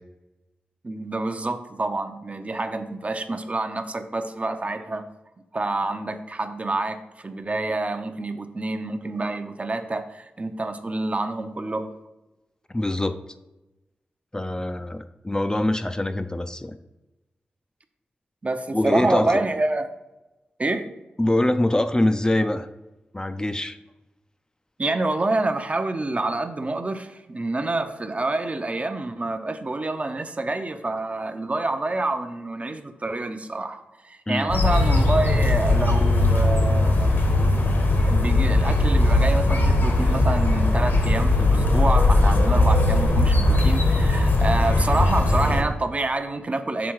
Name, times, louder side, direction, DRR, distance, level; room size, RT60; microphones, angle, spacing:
voice 1, 0.8-5.0 5.5-11.9 18.4-19.9 20.6-20.9 24.8-37.3 38.0-46.9, right 2 dB, 40° right, 8 dB, 0.6 m, -27 dB
voice 2, 12.7-13.2 14.3-16.8 18.7-19.4 21.2-22.7 23.1-23.8 34.3-34.5, left 1 dB, 20° left, 9 dB, 0.4 m, -24 dB
sound 1, 34.5-45.6, left 2 dB, 70° left, 1.2 m, -19 dB
6.1 x 3.4 x 4.7 m, 1.0 s
cardioid pair, 45°, 4 cm